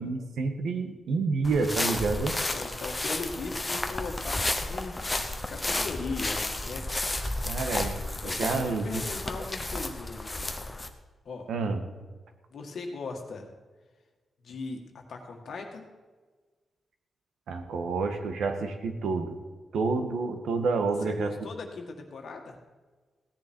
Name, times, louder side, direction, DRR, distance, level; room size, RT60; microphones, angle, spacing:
voice 1, 0.0-2.4 7.5-9.0 11.5-11.8 17.5-19.4 19.7-21.3, right 4 dB, 85° right, 6 dB, 1.6 m, -29 dB
sound 1, 1.4-10.9, left 2 dB, 15° left, 0.9 m, -32 dB
voice 2, 2.5-6.9 8.2-10.7 11.3-11.5 12.5-13.5 14.4-14.8 15.1-15.9 21.0-22.6, left 4 dB, 55° left, 3 dB, 2.0 m, -38 dB
16.5 x 10.0 x 4.6 m, 1.3 s
wide cardioid pair, 180°, 0 cm